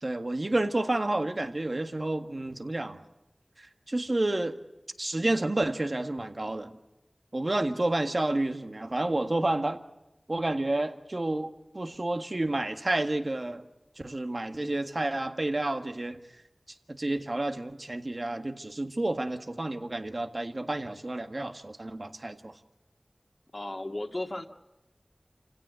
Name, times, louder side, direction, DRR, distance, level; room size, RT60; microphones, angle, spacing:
voice 1, 0.0-3.0 3.6-4.6 5.0-6.8 7.3-9.8 10.3-11.5 11.7-13.6 14.0-16.2 16.9-22.5, right 2 dB, 55° right, 1.7 m, -30 dB
voice 2, 23.5-24.5, left 1 dB, 45° left, 2.1 m, -34 dB
28.5 x 16.5 x 8.2 m
wide cardioid pair, 40°, 0 cm